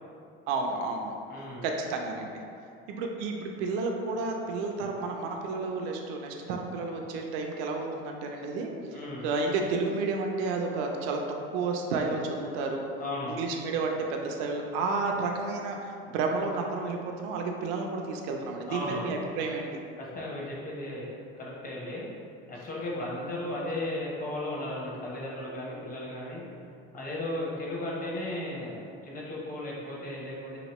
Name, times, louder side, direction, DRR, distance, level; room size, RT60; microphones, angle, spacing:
voice 1, 0.5-1.2 1.6-2.4 2.9-11.2 11.5-12.8 13.3-19.7, right 3 dB, 75° right, 2 dB, 0.5 m, -31 dB
voice 2, 1.3-1.7 8.9-9.3 13.0-13.4 18.7-19.1 20.0-22.1 22.5-26.4 26.9-30.6, left 1 dB, 30° left, -4 dB, 0.9 m, -35 dB
3.0 x 2.8 x 2.9 m, 2.5 s
supercardioid pair, 95°, 29 cm